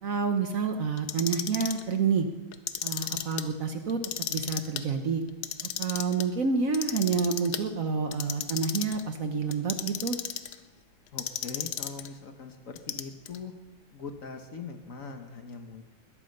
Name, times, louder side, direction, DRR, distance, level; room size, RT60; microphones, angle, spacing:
voice 1, 0.0-2.3 2.8-4.0 4.3-5.2 5.8-10.2, right 5 dB, 55° right, 6 dB, 1.2 m, -28 dB
Clock, 1.0-1.8 2.5-3.4 3.9-4.8 5.3-6.2 6.7-7.6 8.1-9.0 9.5-10.6 11.2-12.1 12.8-13.4, left 10 dB, 65° left, 1.2 m, -34 dB
voice 2, 11.1-13.5 13.9-15.8, left 4 dB, 50° left, 6 dB, 1.4 m, -41 dB
20.5 x 8.7 x 6.6 m, 1.2 s
omnidirectional pair, 2.0 m